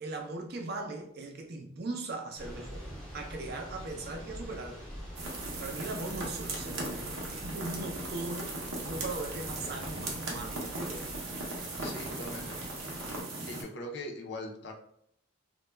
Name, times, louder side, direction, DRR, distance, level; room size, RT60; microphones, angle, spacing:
voice 1, 0.0-2.9 3.1-4.9 5.6-7.0 7.3-8.6 8.9-11.1, right 2 dB, 50° right, 3 dB, 0.4 m, -39 dB
Thunder / Rain, 2.4-13.2, equal, 5° left, 0.6 m, -45 dB
sound 1, 5.2-13.6, right 2 dB, 90° right, 0.7 m, -38 dB
voice 2, 11.8-12.6 13.4-14.7, left 1 dB, 55° left, 1 dB, 0.4 m, -41 dB
2.2 x 2.0 x 3.1 m, 0.71 s
head